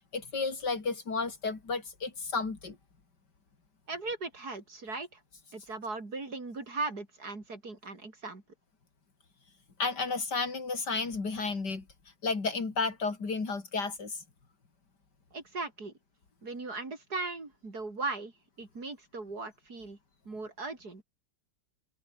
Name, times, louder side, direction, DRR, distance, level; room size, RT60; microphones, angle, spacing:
voice 1, 0.1-2.8 9.8-11.9 12.2-14.2, left 4 dB, 70° left, 4.0 m, -32 dB
voice 2, 3.9-5.2 5.5-8.4 15.3-15.9 16.4-18.3 18.6-20.0 20.2-21.0, right 3 dB, 60° right, 4.7 m, -38 dB
omnidirectional pair, 1.9 m